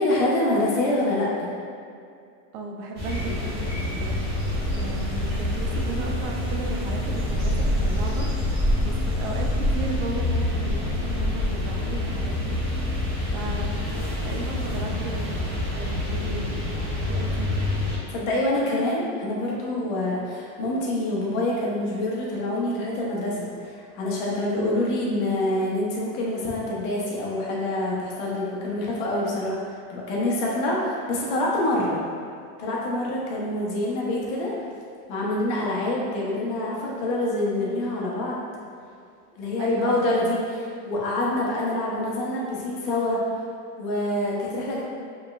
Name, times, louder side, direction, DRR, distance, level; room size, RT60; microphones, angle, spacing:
voice 1, 0.0-1.5 18.1-32.0 32.6-34.5 35.1-38.5 39.4-40.4 40.8-43.2 43.8-44.8, left 1 dB, 50° left, -4 dB, 1.1 m, -26 dB
voice 2, 2.5-4.3 4.7-8.3 8.8-12.6 13.3-13.8 14.2-16.6 17.1-17.5 39.6-40.4, right 3 dB, 40° right, 0 dB, 0.5 m, -35 dB
sound 1, 2.9-18.0, left 1 dB, 20° right, 1.4 m, -26 dB
5.0 x 3.7 x 2.5 m, 2.3 s
supercardioid pair, 155°, 47 cm